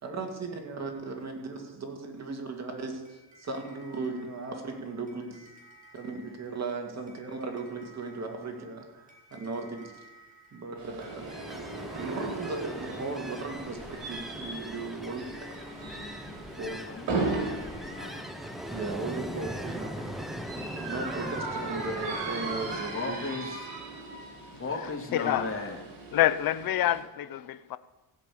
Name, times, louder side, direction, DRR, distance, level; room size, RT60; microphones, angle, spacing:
voice 1, 0.0-5.5 5.9-10.0 10.5-11.4 12.0-15.6 16.6-16.8 18.7-20.0 20.9-23.2, right 3 dB, 35° right, 3 dB, 2.5 m, -37 dB
sound 1, 3.0-21.7, right 2 dB, 15° right, 2.6 m, -52 dB
sound 2, 10.8-27.0, right 3 dB, 65° right, 4.1 m, -38 dB
Ocean, 11.0-23.1, equal, ahead, 0.8 m, -40 dB
voice 2, 16.6-18.2 22.9-23.7 24.6-25.8, left 4 dB, 25° left, 1 dB, 2.4 m, -36 dB
voice 3, 25.1-25.5 26.1-27.8, left 13 dB, 50° left, 14 dB, 0.7 m, -27 dB
16.0 x 5.3 x 8.6 m, 1.1 s
cardioid pair, 120°, 47 cm